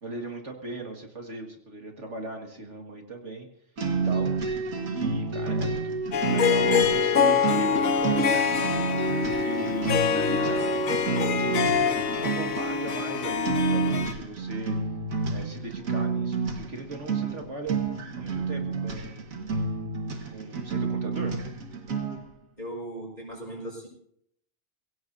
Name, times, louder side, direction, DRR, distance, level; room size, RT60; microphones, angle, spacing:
voice 1, 0.0-3.5 4.0-4.3 4.9-8.8 9.2-11.0 12.2-14.8 15.3-17.8 18.2-19.2 20.2-21.3, right 2 dB, 60° right, 2 dB, 2.2 m, -38 dB
sound 1, 3.8-22.3, right 4 dB, 85° right, 2.1 m, -30 dB
Harp, 6.1-14.1, left 7 dB, 80° left, 1.5 m, -25 dB
voice 2, 22.6-23.9, right 1 dB, 30° left, 0 dB, 5.4 m, -38 dB
23.0 x 16.5 x 2.7 m, 0.72 s
omnidirectional pair, 1.4 m